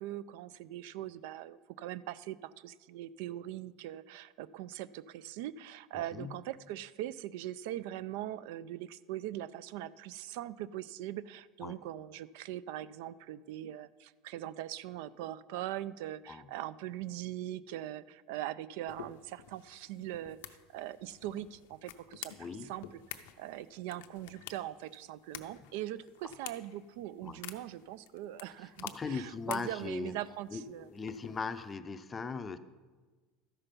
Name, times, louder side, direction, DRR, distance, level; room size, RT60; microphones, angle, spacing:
voice 1, 0.0-28.8 29.1-30.9, right 13 dB, 75° right, 17 dB, 0.3 m, -41 dB
voice 2, 6.1-6.4 11.6-11.8 16.3-16.5 22.4-22.7 27.2-27.4 28.6-30.1 30.5-32.6, left 5 dB, 20° left, 11 dB, 0.5 m, -39 dB
sound 1, 18.9-31.7, left 12 dB, 90° left, 0.6 m, -51 dB
13.0 x 5.7 x 5.2 m, 1.3 s
supercardioid pair, 140°, 0 cm